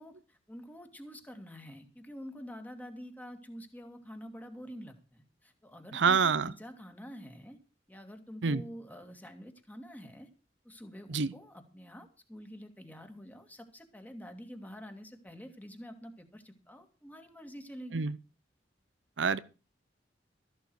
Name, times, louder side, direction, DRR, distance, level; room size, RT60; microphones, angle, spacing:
voice 1, 0.0-7.6 7.9-10.3 10.6-18.0, equal, 10° left, 2.1 m, -47 dB
voice 2, 5.9-6.5 8.4-8.6 11.1-11.3 17.9-18.1 19.2-19.4, right 5 dB, 85° right, 0.7 m, -26 dB
14.0 x 12.0 x 4.7 m
head